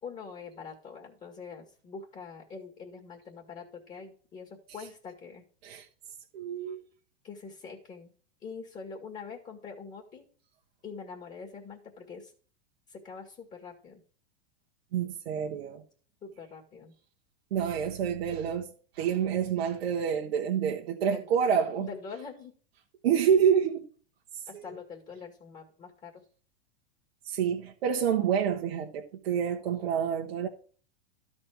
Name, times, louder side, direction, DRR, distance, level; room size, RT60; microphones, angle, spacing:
voice 1, 0.0-5.4 7.2-8.1 8.4-10.3 10.8-12.3 12.9-14.0 16.2-16.9 21.1-21.2 21.8-22.5 24.5-26.2, left 5 dB, 25° left, 2.0 m, -44 dB
voice 2, 6.3-6.8 14.9-15.8 17.5-18.7 18.9-21.9 23.0-23.9 24.5-24.7 27.2-30.5, right 8 dB, 75° right, 1.4 m, -27 dB
12.5 x 4.4 x 6.1 m
hypercardioid pair, 115°, 30 cm